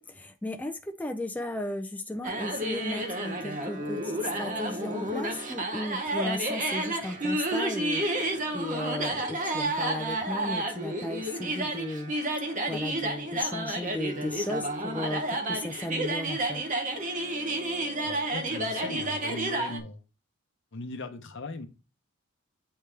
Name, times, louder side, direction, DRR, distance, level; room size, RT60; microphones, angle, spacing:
voice 1, 0.0-12.1 12.7-16.6, left 1 dB, 10° left, 5 dB, 0.4 m, -35 dB
sound 1, 2.2-19.8, right 1 dB, 40° right, 0.9 m, -31 dB
voice 2, 18.0-20.0 20.7-21.7, left 3 dB, 60° left, 7 dB, 0.8 m, -39 dB
8.7 x 3.3 x 3.3 m, 0.33 s
head